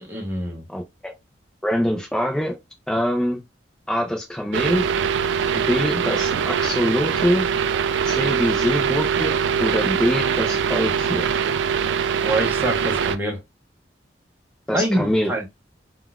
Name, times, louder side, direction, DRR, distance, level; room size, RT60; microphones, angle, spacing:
voice 1, 0.0-0.6 12.2-13.4 14.7-15.5, right 1 dB, 10° right, 0.8 m, -25 dB
voice 2, 0.7-1.1 1.6-2.6 2.9-3.4 3.9-4.9 5.5-7.5 8.0-11.3 14.7-15.3, equal, 5° left, 0.4 m, -24 dB
sound 1, 4.5-13.2, right 7 dB, 85° right, 0.3 m, -22 dB
3.7 x 2.3 x 2.2 m
head